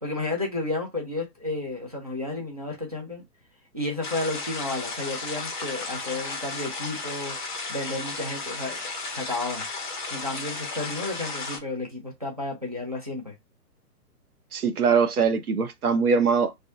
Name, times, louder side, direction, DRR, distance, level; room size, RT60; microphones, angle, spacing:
voice 1, 0.0-3.2 3.7-7.4 7.7-8.8 9.1-9.7 10.1-13.3, left 2 dB, 25° right, 0.4 m, -32 dB
sound 1, 4.0-11.6, left 3 dB, 30° left, 0.6 m, -34 dB
voice 2, 14.5-16.7, right 5 dB, 65° right, 0.6 m, -22 dB
2.3 x 2.1 x 2.6 m
figure-of-eight pair, 130°, 48 cm